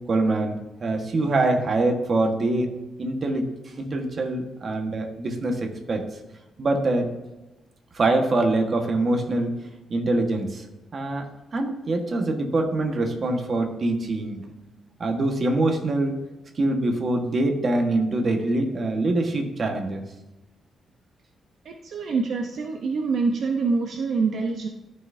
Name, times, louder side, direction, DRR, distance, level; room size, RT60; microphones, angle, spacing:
voice 1, 0.1-2.7 3.0-6.0 6.6-7.1 7.9-9.5 9.9-10.7 10.9-11.2 11.5-14.4 15.0-16.2 16.5-20.0, right 2 dB, 40° right, 3 dB, 1.4 m, -24 dB
voice 2, 21.6-24.7, right 4 dB, 65° right, 3 dB, 0.8 m, -25 dB
13.5 x 5.8 x 2.7 m, 1.0 s
cardioid pair, 125°, 0 cm